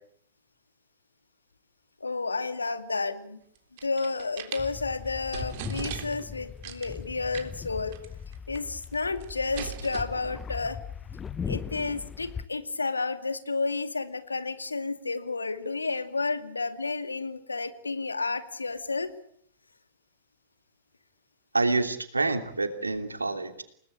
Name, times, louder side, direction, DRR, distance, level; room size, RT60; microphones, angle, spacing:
voice 1, 2.0-3.4 3.8-8.0 8.5-10.8 11.4-19.1, left 3 dB, 80° left, 10 dB, 2.3 m, -31 dB
sound 1, 3.6-4.7 5.1-5.2 5.3-6.3 6.6-7.0 7.3-7.6 7.9-8.1 8.3-8.9 9.2-10.0, right 11 dB, 50° right, 3.5 m, -39 dB
sound 2, 4.6-12.5, left 7 dB, 20° left, 1.1 m, -39 dB
voice 2, 21.5-23.6, right 3 dB, 85° right, 8 dB, 3.0 m, -27 dB
29.5 x 19.5 x 8.7 m, 0.67 s
figure-of-eight pair, 100°, 0 cm